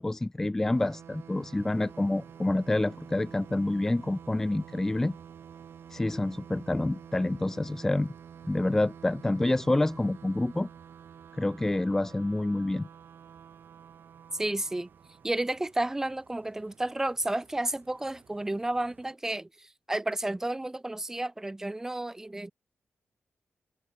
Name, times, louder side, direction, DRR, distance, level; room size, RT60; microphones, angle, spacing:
voice 1, 0.0-5.2 5.9-8.1 8.4-10.7 11.3-12.9, left 2 dB, 10° left, 0.3 m, -28 dB
sound 1, 0.7-16.1, right 8 dB, 70° right, 7.9 m, -49 dB
sound 2, 1.6-19.1, right 6 dB, 45° right, 3.7 m, -62 dB
voice 2, 14.3-14.9 15.2-22.5, right 1 dB, 10° right, 1.3 m, -31 dB
wide cardioid pair, 160°, 4 cm